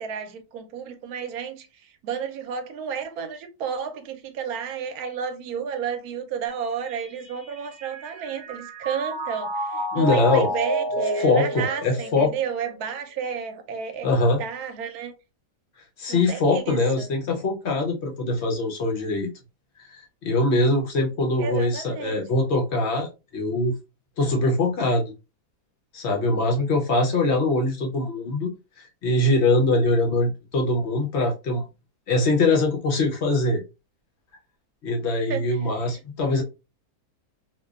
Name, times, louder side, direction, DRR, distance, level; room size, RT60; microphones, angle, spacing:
voice 1, 0.0-1.7 2.0-14.1 14.4-15.1 16.1-17.1 21.4-22.2 35.3-35.9, right 7 dB, 70° right, 1.0 m, -32 dB
Mallet percussion, 6.5-13.0, right 1 dB, 45° right, 0.7 m, -30 dB
voice 2, 9.9-10.5 11.2-12.3 14.0-14.4 16.0-19.3 19.8-23.1 23.3-23.8 24.2-25.1 25.9-28.5 28.8-31.6 32.1-33.6 34.8-36.4, left 2 dB, 70° left, 0.6 m, -22 dB
2.9 x 2.2 x 2.3 m
omnidirectional pair, 1.8 m